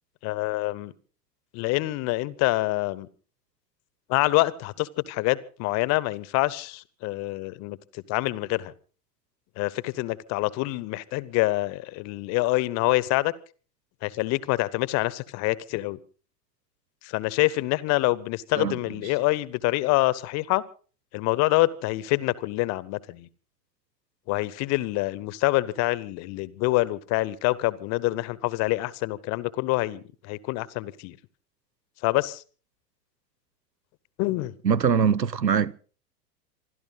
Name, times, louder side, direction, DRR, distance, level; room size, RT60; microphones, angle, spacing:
voice 1, 0.2-0.9 1.5-3.1 4.1-8.7 9.6-13.3 14.0-16.0 17.0-20.6 21.1-23.3 24.3-31.2 32.0-32.4 34.2-34.6, left 20 dB, 35° left, 0.9 m, -26 dB
voice 2, 34.6-35.8, right 7 dB, 90° right, 0.7 m, -23 dB
27.5 x 12.5 x 4.0 m
figure-of-eight pair, 90°, 48 cm